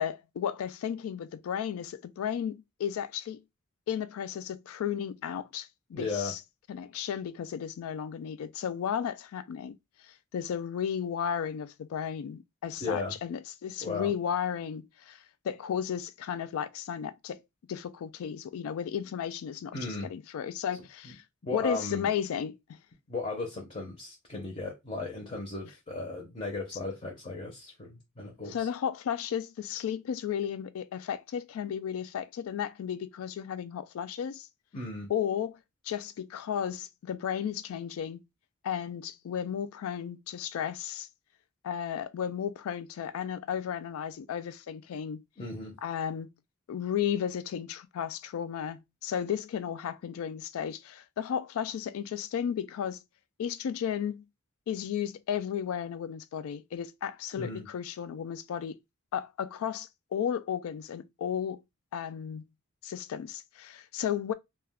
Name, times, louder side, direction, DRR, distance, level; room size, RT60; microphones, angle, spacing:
voice 1, 0.0-3.4 3.9-6.4 6.7-9.8 10.0-17.4 17.7-21.2 21.5-22.8 28.5-34.5 35.1-35.6 35.8-38.2 38.6-41.1 41.6-45.2 45.8-46.3 46.7-53.0 53.4-54.2 54.7-58.8 59.1-61.6 61.9-62.4 62.8-64.3, left 8 dB, 80° left, 0.3 m, -34 dB
voice 2, 5.9-6.3 12.8-13.2 13.8-14.1 19.7-20.1 21.0-21.1 21.4-22.1 23.1-28.7 34.7-35.1 45.4-45.7 57.3-57.7, left 3 dB, 30° left, 0.6 m, -36 dB
2.3 x 2.2 x 3.4 m
head